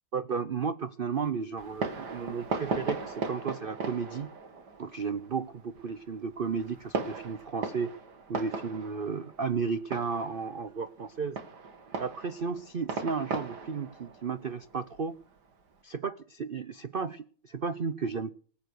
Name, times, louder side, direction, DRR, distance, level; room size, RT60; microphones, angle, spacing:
voice 1, 0.1-4.3 4.8-7.9 8.3-11.4 12.0-15.2 15.8-18.3, right 5 dB, 75° right, 13 dB, 0.5 m, -33 dB
Fireworks, 1.6-15.7, right 4 dB, 60° right, 2.4 m, -38 dB
19.5 x 9.2 x 6.5 m, 0.43 s
omnidirectional pair, 2.0 m